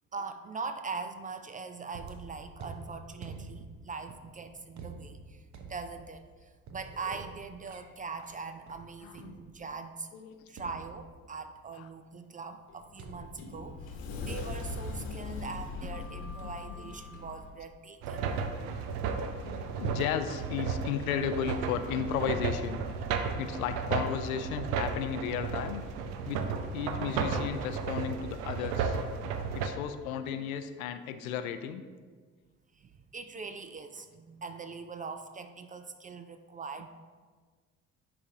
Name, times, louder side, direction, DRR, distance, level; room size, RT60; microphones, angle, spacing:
voice 1, 0.1-10.1 10.5-18.3 32.7-36.9, right 4 dB, 20° right, 8 dB, 0.3 m, -42 dB
sound 1, 1.9-9.8 10.6-11.6 13.0-14.3 14.6-14.9, right 4 dB, 40° right, 0.9 m, -48 dB
voice 2, 9.0-9.4 9.6-9.7 10.1-10.3 11.7-11.9 15.7-15.8 16.4-16.9 19.4-22.8 23.4-25.8 26.3-26.5 26.7-29.0 29.5-31.8, left 8 dB, 75° left, 10 dB, 0.5 m, -34 dB
Sliding door, 12.7-17.5, left 3 dB, 55° left, 1.1 m, -40 dB
sound 2, 18.0-29.7, right 5 dB, 65° right, 0.6 m, -33 dB
10.0 x 4.2 x 2.7 m, 1.5 s
figure-of-eight pair, 45°, 42 cm